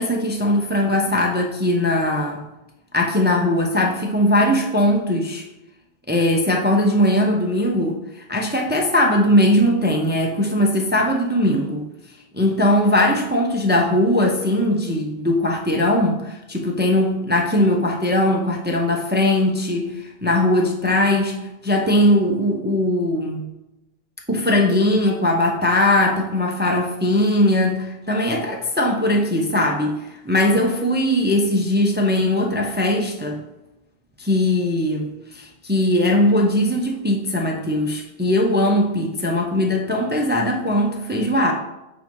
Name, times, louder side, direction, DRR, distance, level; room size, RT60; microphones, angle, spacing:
voice 1, 0.0-2.4 2.9-5.4 6.1-8.0 8.3-11.9 12.3-23.4 24.3-33.4 34.2-41.5, left 1 dB, 10° right, 0 dB, 0.5 m, -20 dB
8.0 x 2.7 x 5.3 m, 0.94 s
omnidirectional pair, 1.2 m